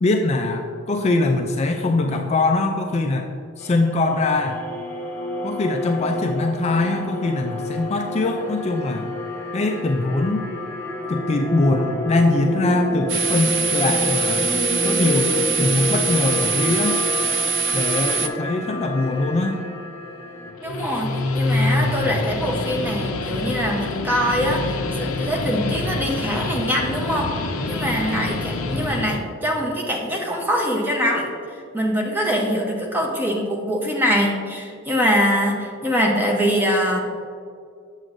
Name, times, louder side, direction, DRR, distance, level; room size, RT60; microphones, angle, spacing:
voice 1, 0.0-0.6 0.9-3.2 3.6-4.6 5.4-9.1 9.5-10.5 11.1-14.5 14.8-17.0 17.7-19.6, left 2 dB, 30° left, 3 dB, 0.3 m, -22 dB
sound 1, 3.6-20.5, left 1 dB, 10° left, 1.4 m, -29 dB
sound 2, 13.1-18.3, right 5 dB, 60° right, 0.4 m, -23 dB
Guitar, 20.5-29.2, left 2 dB, 80° left, 0.6 m, -26 dB
voice 2, 20.6-24.6 25.0-27.3 27.7-31.3 31.7-37.0, equal, 10° right, 0 dB, 0.8 m, -23 dB
7.6 x 7.1 x 2.6 m, 2.3 s
head